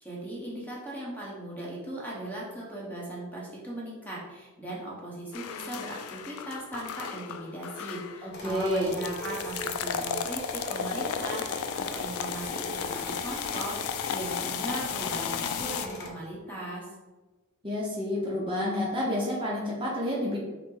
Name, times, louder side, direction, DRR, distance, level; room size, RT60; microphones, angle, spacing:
voice 1, 0.0-16.9, right 1 dB, 10° left, -5 dB, 0.9 m, -38 dB
sound 1, 5.3-8.4 8.9-15.9, left 7 dB, 85° left, 0.3 m, -34 dB
voice 2, 8.2-8.9 17.6-20.4, left 1 dB, 25° right, -5 dB, 0.7 m, -29 dB
sound 2, 8.3-16.1, left 1 dB, 50° left, 0.6 m, -40 dB
5.6 x 2.1 x 3.8 m, 1.2 s
head